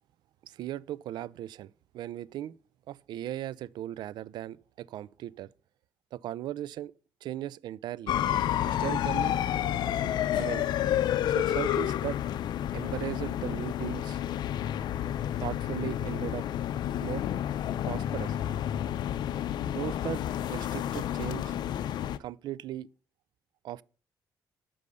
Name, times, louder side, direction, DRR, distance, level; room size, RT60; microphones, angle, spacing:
voice 1, 0.4-2.5 2.9-5.5 6.1-6.9 7.2-8.2 8.6-9.4 9.9-10.7 11.3-12.2 12.7-14.2 15.4-16.5 17.0-17.2 17.9-18.4 19.7-21.5 22.2-22.9 23.6-23.8, right 13 dB, 75° right, 0.3 m, -37 dB
sound 1, 8.1-22.2, left 11 dB, 75° left, 0.5 m, -30 dB
8.5 x 5.4 x 6.3 m
cardioid pair, 85°, 8 cm